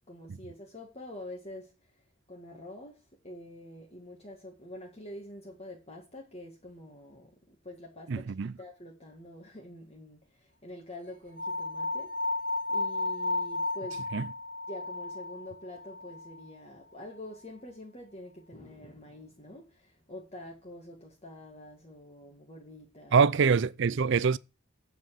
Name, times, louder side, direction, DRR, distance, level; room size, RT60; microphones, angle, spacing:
voice 1, 0.1-12.2 12.7-14.0 14.7-23.3, left 1 dB, 30° left, 1.7 m, -46 dB
voice 2, 8.1-8.5 14.1-14.3 23.1-24.4, right 5 dB, 55° right, 0.4 m, -24 dB
sound 1, 11.4-16.5, left 2 dB, 40° right, 1.7 m, -33 dB
9.1 x 4.8 x 7.4 m
head